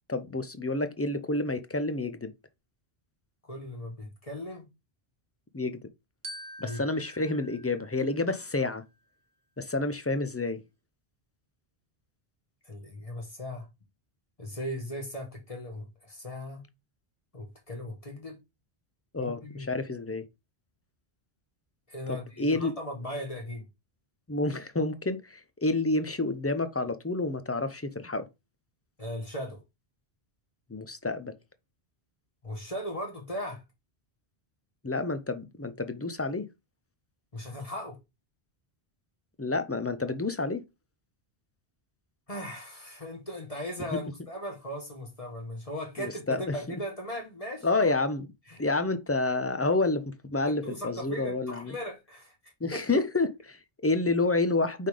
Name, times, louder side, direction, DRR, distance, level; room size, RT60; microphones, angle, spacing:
voice 1, 0.1-2.3 5.5-5.8 6.6-8.8 9.6-10.6 19.1-20.3 22.1-22.7 24.3-28.3 30.7-31.3 34.8-36.5 39.4-40.6 43.9-44.0 46.0-46.8 47.6-48.3 48.6-51.7 52.6-54.9, left 2 dB, 20° left, 0.5 m, -29 dB
voice 2, 3.5-4.7 6.6-6.8 12.7-13.7 14.4-16.6 17.3-18.4 19.2-19.8 21.9-23.7 29.0-29.6 32.4-33.6 37.3-38.0 42.3-47.7 48.5-48.6 50.4-53.0, equal, 35° left, 1.7 m, -38 dB
Glockenspiel, 6.2-8.7, right 1 dB, 55° right, 1.4 m, -46 dB
5.6 x 3.7 x 4.9 m
omnidirectional pair, 1.1 m